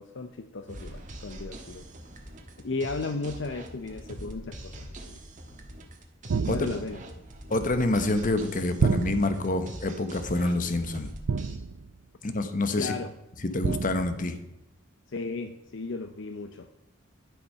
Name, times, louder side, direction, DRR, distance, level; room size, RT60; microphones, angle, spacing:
voice 1, 0.0-1.8 2.6-5.2 6.5-7.0 12.8-13.1 15.1-16.7, left 3 dB, 60° left, 8 dB, 0.6 m, -35 dB
sound 1, 0.7-11.6, right 1 dB, 40° right, 1.4 m, -43 dB
sound 2, 6.3-7.1 8.8-9.6 11.3-12.0 13.6-14.3, right 4 dB, 80° right, 0.5 m, -29 dB
voice 2, 7.5-11.1 12.2-12.9 13.4-14.4, left 2 dB, 40° left, 9 dB, 1.0 m, -27 dB
11.0 x 7.0 x 5.6 m, 0.92 s
head